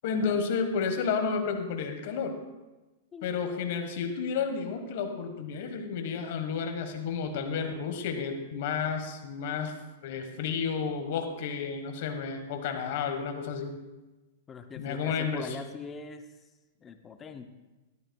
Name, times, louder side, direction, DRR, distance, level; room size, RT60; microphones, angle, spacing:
voice 1, 0.0-2.4 3.2-9.7 10.0-13.7 14.7-15.6, left 6 dB, 60° left, 5 dB, 1.3 m, -31 dB
voice 2, 14.5-16.3 16.8-17.5, left 5 dB, 20° left, 8 dB, 0.6 m, -42 dB
12.0 x 12.0 x 2.3 m, 1.1 s
hypercardioid pair, 145°, 0 cm